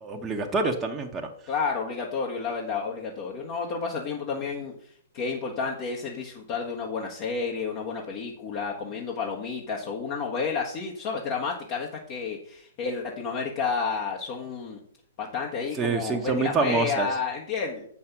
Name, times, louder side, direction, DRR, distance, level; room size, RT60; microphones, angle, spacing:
voice 1, 0.0-1.3 15.8-17.1, right 4 dB, 15° right, 1 dB, 1.2 m, -26 dB
voice 2, 1.5-4.7 5.1-14.8 15.2-17.9, left 5 dB, 40° left, -1 dB, 1.6 m, -31 dB
7.8 x 6.2 x 6.0 m, 0.63 s
figure-of-eight pair, 115°, 0 cm